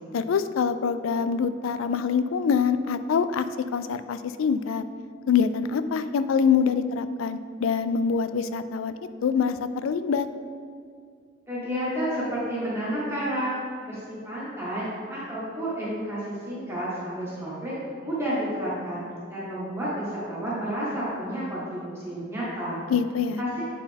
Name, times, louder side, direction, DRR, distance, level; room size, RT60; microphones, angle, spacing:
voice 1, 0.1-3.5 3.7-4.8 5.3-8.9 9.2-10.3 22.9-23.4, left 6 dB, 85° left, 12 dB, 0.3 m, -25 dB
voice 2, 11.5-13.6 13.8-14.8 15.1-19.0 19.3-22.8 23.4-23.6, equal, 10° right, -9 dB, 1.6 m, -30 dB
9.0 x 4.5 x 3.5 m, 2.2 s
head